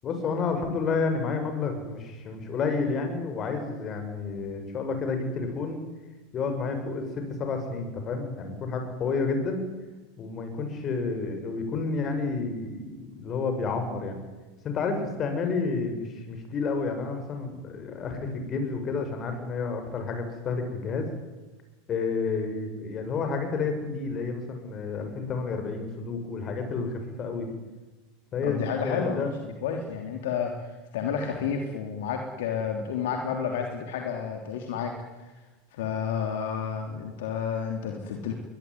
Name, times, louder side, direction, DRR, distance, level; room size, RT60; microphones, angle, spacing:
voice 1, 0.0-5.8 6.3-9.6 10.2-14.2 14.6-21.1 21.9-27.5 28.3-29.3, left 4 dB, 35° left, 6 dB, 7.0 m, -30 dB
voice 2, 28.4-34.9 35.7-38.3, left 7 dB, 65° left, 3 dB, 3.3 m, -31 dB
22.5 x 19.5 x 9.5 m, 1.2 s
hypercardioid pair, 90°, 0 cm